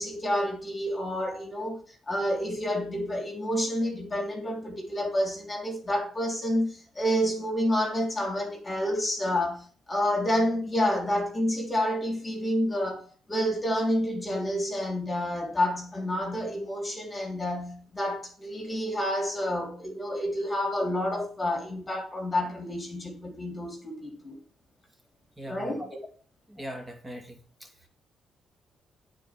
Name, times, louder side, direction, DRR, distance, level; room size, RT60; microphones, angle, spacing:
voice 1, 0.0-1.8 2.1-24.3 25.4-25.8, equal, 20° left, 3.0 m, -29 dB
voice 2, 25.4-25.9 26.5-27.9, equal, 20° right, 2.6 m, -41 dB
9.0 x 4.4 x 7.2 m
cardioid pair, 90°, 0 cm